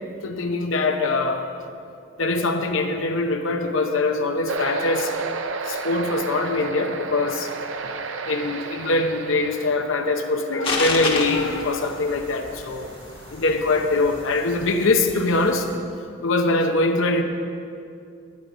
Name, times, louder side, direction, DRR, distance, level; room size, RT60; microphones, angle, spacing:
voice 1, 0.1-1.5 2.2-5.1 5.7-7.5 8.3-12.9 13.3-15.7 16.2-17.2, left 2 dB, 70° left, 5 dB, 0.8 m, -23 dB
sound 1, 4.5-13.7, right 4 dB, 65° right, 0.6 m, -33 dB
sound 2, 10.6-15.8, left 3 dB, 25° left, 1.3 m, -32 dB
10.5 x 5.2 x 8.5 m, 2.4 s
head